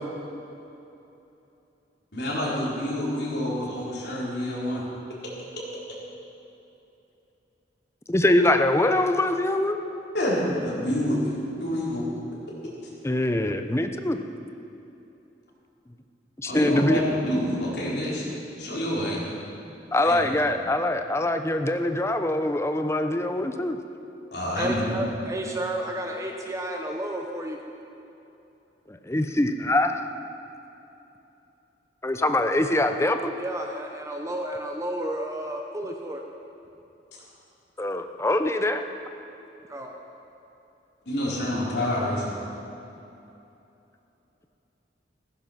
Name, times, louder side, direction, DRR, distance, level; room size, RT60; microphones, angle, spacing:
voice 1, 2.1-4.8 10.1-11.2 11.6-12.0 16.5-18.3 18.6-19.2 20.0-20.2 24.3-24.9 41.1-42.2, left 1 dB, 65° left, -6 dB, 4.6 m, -27 dB
voice 2, 8.1-9.8 13.0-14.2 16.4-17.0 19.9-23.8 28.9-30.1 32.0-33.3 37.8-38.8, left 1 dB, 15° left, 7 dB, 0.7 m, -23 dB
voice 3, 24.6-27.6 33.4-36.2 39.7-39.9, right 1 dB, 20° right, 2 dB, 0.9 m, -31 dB
15.5 x 14.5 x 5.9 m, 2.9 s
head